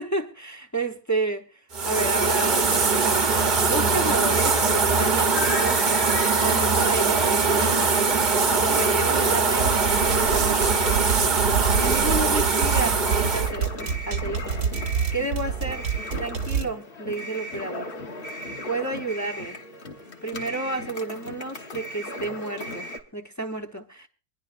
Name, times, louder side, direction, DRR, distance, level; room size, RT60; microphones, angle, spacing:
voice 1, 0.0-3.4 3.6-6.1 6.4-8.0 8.4-11.1 11.7-15.9 16.1-17.9 18.6-19.6 20.2-24.1, right 2 dB, 20° left, 0.5 m, -31 dB
sound 1, 1.7-13.5, right 4 dB, 40° right, 0.8 m, -22 dB
sound 2, 4.3-23.0, left 1 dB, 35° left, 1.3 m, -36 dB
sound 3, 9.6-16.6, right 7 dB, 85° right, 1.7 m, -27 dB
25.0 x 10.5 x 2.5 m
omnidirectional pair, 1.8 m